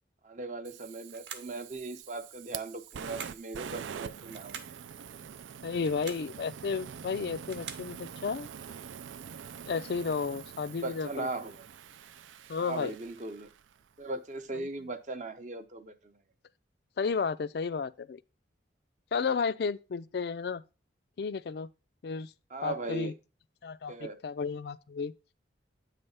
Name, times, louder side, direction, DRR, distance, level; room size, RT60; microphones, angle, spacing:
voice 1, 0.2-4.7 5.1-5.2 10.8-11.6 12.6-13.5 14.0-16.1 22.5-23.1 23.9-24.2, right 2 dB, 40° right, 0.6 m, -38 dB
Fire, 0.6-13.8, right 7 dB, 90° right, 0.4 m, -45 dB
sound 1, 1.1-1.6 2.9-3.5 4.3-4.8 5.7-6.3 7.2-7.9, right 6 dB, 75° right, 0.9 m, -45 dB
voice 2, 5.6-8.5 9.7-11.3 12.5-12.9 14.6-14.7 17.0-18.2 19.1-20.6 21.2-21.7 22.0-22.3 22.6-23.1 23.6-25.1, left 5 dB, 60° left, 0.4 m, -33 dB
8.6 x 3.3 x 5.5 m
head